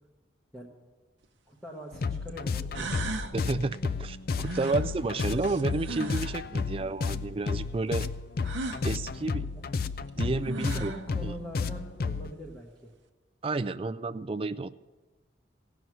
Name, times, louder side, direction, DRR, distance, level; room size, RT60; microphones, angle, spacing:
sound 1, 1.2-1.3 2.3-2.4 2.7-3.4 4.4-6.4 8.4-8.9 10.1-10.2 10.4-11.1, right 2 dB, 75° right, 0.8 m, -37 dB
voice 1, 1.5-3.3 4.7-4.8 9.5-9.6 10.5-12.9, equal, 5° left, -3 dB, 1.1 m, -43 dB
sound 2, 1.9-12.3, left 4 dB, 50° left, 0.4 m, -32 dB
voice 2, 3.3-8.1 8.8-9.5 10.2-10.9 11.2-11.3 13.4-14.7, right 3 dB, 30° right, 12 dB, 0.4 m, -31 dB
16.0 x 6.2 x 9.4 m, 1.3 s
head